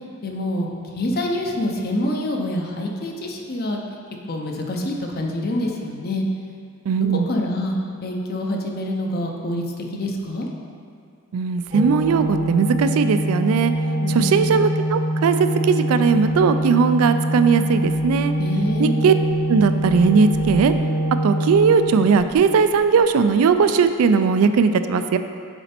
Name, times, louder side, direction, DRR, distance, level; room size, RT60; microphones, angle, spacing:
voice 1, 0.2-0.7 0.9-3.8 4.3-6.2 7.1-9.7 9.9-10.5 14.0-14.5 18.4-18.9, left 1 dB, 45° left, 1 dB, 0.7 m, -26 dB
voice 2, 6.9-7.3 11.3-13.7 14.1-18.3 18.8-19.1 19.5-20.7 21.2-25.2, right 5 dB, 85° right, 10 dB, 0.3 m, -18 dB
Organ, 11.7-22.6, right 1 dB, 30° right, 0.7 m, -24 dB
7.0 x 4.2 x 4.3 m, 2.2 s
head